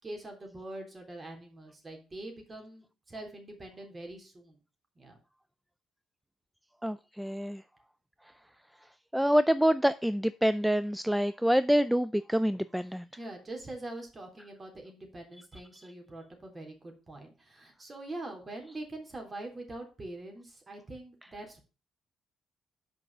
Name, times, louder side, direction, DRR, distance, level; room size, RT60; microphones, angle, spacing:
voice 1, 0.0-4.6 4.9-5.2 13.2-21.6, right 2 dB, 30° right, 3.2 m, -44 dB
voice 2, 6.8-7.6 9.1-13.0, equal, 5° right, 0.3 m, -26 dB
5.9 x 5.2 x 6.7 m
cardioid pair, 80°, 0 cm